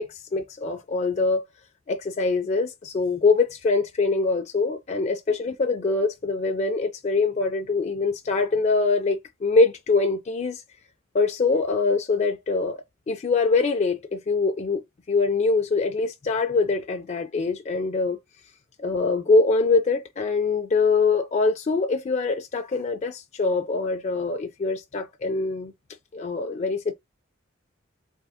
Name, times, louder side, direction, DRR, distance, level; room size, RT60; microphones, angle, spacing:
voice 1, 0.0-1.4 1.9-10.6 11.1-18.2 18.8-25.7 26.1-26.9, left 3 dB, 35° left, 0.3 m, -24 dB
3.5 x 2.8 x 3.4 m
head